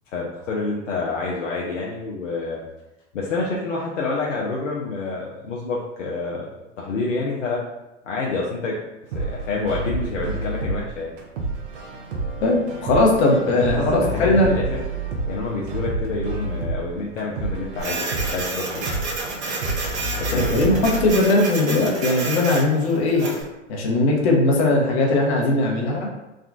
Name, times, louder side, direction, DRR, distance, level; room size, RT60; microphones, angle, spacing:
voice 1, 0.1-2.6 3.1-6.5 6.8-7.6 8.0-8.8 9.1-11.2 13.6-14.8 15.3-19.0 20.2-20.6, left 3 dB, 80° left, -4 dB, 0.6 m, -28 dB
sound 1, 9.1-21.1, right 2 dB, 65° right, 0.8 m, -29 dB
voice 2, 12.4-14.6 20.3-23.2 23.7-26.1, left 2 dB, 60° left, -1 dB, 0.9 m, -19 dB
Printer, 17.8-23.4, right 3 dB, 50° right, 1.1 m, -30 dB
3.6 x 2.3 x 2.3 m, 0.98 s
hypercardioid pair, 95°, 37 cm